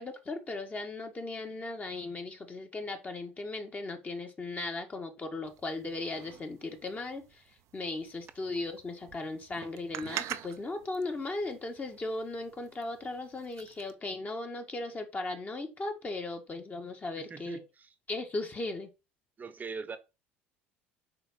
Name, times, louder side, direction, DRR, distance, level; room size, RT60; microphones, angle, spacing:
voice 1, 0.0-7.4 7.7-17.6 18.1-18.9, left 2 dB, 25° left, 1.8 m, -37 dB
sound 1, 5.5-13.9, right 12 dB, 55° right, 0.7 m, -46 dB
voice 2, 17.2-17.9 19.4-20.0, right 5 dB, 30° right, 1.1 m, -42 dB
6.7 x 4.8 x 4.0 m
hypercardioid pair, 65°, 6 cm